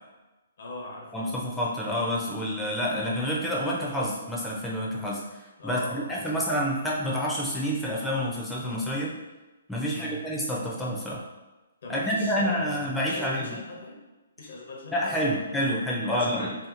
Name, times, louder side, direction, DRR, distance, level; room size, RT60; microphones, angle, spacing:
voice 1, 0.6-1.4 5.6-6.6 9.8-10.2 11.8-14.0 14.4-16.6, left 2 dB, 65° left, -1 dB, 0.7 m, -41 dB
voice 2, 1.1-9.1 9.7-11.2 11.9-13.6 14.9-16.5, equal, 5° left, -6 dB, 0.4 m, -28 dB
2.7 x 2.6 x 2.5 m, 1.1 s
hypercardioid pair, 150°, 0 cm